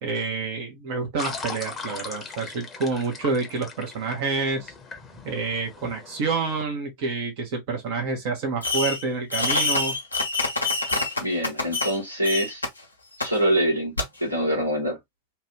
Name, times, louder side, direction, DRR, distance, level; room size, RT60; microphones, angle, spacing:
voice 1, 0.0-4.7 5.2-9.9, right 4 dB, 45° right, 0.9 m, -28 dB
sound 1, 1.2-6.6, left 4 dB, 20° left, 0.9 m, -39 dB
Fireworks, 8.6-9.0 9.3-12.0 12.2-12.7 13.2-13.3 14.0-14.1, left 3 dB, 80° left, 0.8 m, -25 dB
voice 2, 11.2-12.6 13.2-13.9 14.2-15.0, equal, 85° right, 1.4 m, -24 dB
2.9 x 2.4 x 3.0 m
figure-of-eight pair, 90°, 0 cm